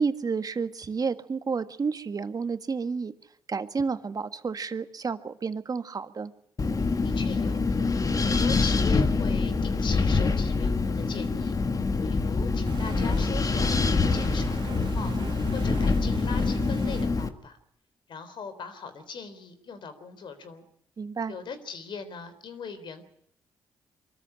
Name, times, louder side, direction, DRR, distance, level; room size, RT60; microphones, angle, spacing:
voice 1, 0.0-3.1 3.5-6.3 21.0-21.3, right 5 dB, 45° right, 10 dB, 1.7 m, -30 dB
Wind, 6.6-17.3, left 4 dB, 40° left, 1.9 m, -25 dB
voice 2, 7.0-7.6 8.2-11.5 12.0-15.2 15.5-17.6 18.1-20.6 21.3-23.0, left 5 dB, 65° left, 11 dB, 3.8 m, -40 dB
sound 1, 12.7-17.0, right 4 dB, 65° right, 2.6 m, -38 dB
24.0 x 13.5 x 9.9 m, 0.76 s
supercardioid pair, 50°, 9 cm